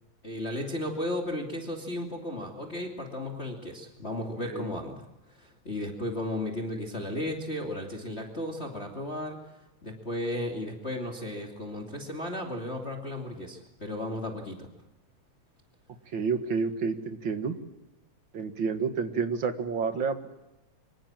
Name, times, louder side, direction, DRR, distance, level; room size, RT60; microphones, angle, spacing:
voice 1, 0.2-9.4 9.8-14.7, left 1 dB, 20° left, 1 dB, 2.8 m, -34 dB
voice 2, 16.1-17.5 18.3-20.3, right 5 dB, 45° right, 8 dB, 2.2 m, -29 dB
25.5 x 25.0 x 7.6 m, 0.96 s
omnidirectional pair, 3.3 m